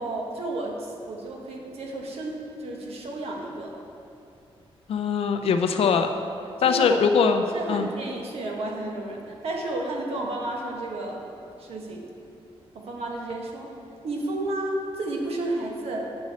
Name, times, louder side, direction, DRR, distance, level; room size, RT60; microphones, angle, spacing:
voice 1, 0.0-3.7 6.6-7.3 7.5-11.2 11.6-12.1 12.7-13.7 14.0-16.1, right 2 dB, 75° right, 0 dB, 1.2 m, -32 dB
voice 2, 4.9-6.1 6.6-7.4 7.7-7.9, left 6 dB, 70° left, 6 dB, 0.5 m, -21 dB
8.6 x 6.1 x 4.2 m, 2.7 s
wide cardioid pair, 160°, 10 cm